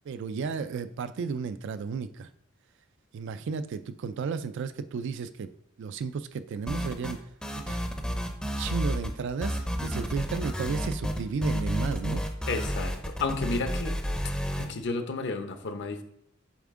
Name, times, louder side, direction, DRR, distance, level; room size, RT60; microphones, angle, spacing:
voice 1, 0.1-2.3 3.1-5.5 5.8-7.2 7.6-7.8 8.6-12.2, right 5 dB, 60° right, 12 dB, 0.3 m, -33 dB
sound 1, 6.7-7.2 7.4-9.1 9.4-14.7, equal, 5° left, 0.5 m, -31 dB
voice 2, 12.5-14.0 14.6-16.0, left 3 dB, 55° left, 8 dB, 0.7 m, -32 dB
7.1 x 4.2 x 3.6 m, 0.74 s
head